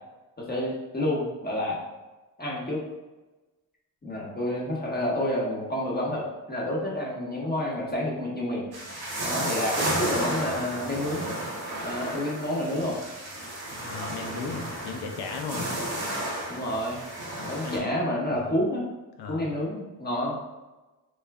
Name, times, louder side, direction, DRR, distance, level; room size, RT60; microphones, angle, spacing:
voice 1, 0.4-1.8 2.4-2.8 4.0-8.7 9.2-11.2 11.8-13.0 16.5-17.0 17.5-18.8 19.3-20.3, left 1 dB, 25° left, -3 dB, 1.0 m, -29 dB
sound 1, 8.7-17.8, right 1 dB, 65° right, 1.1 m, -32 dB
voice 2, 13.7-15.7 17.4-17.9 18.3-18.5 19.2-19.6, left 4 dB, 75° left, 3 dB, 0.6 m, -36 dB
3.1 x 2.1 x 3.4 m, 1.1 s
supercardioid pair, 55°, 40 cm